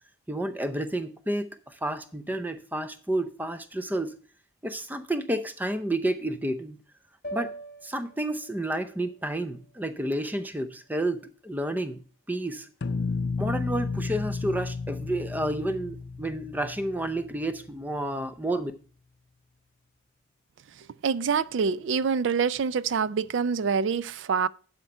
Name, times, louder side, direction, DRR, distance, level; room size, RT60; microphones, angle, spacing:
voice 1, 0.3-4.2 4.6-6.8 7.3-7.5 7.8-12.7 13.4-18.7, right 1 dB, 10° right, 0.6 m, -30 dB
sound 1, 7.2-11.5, right 1 dB, 45° left, 1.4 m, -45 dB
sound 2, 12.8-17.7, left 4 dB, 60° left, 0.5 m, -33 dB
voice 2, 21.0-24.5, right 6 dB, 70° right, 0.4 m, -26 dB
11.5 x 4.5 x 5.4 m
head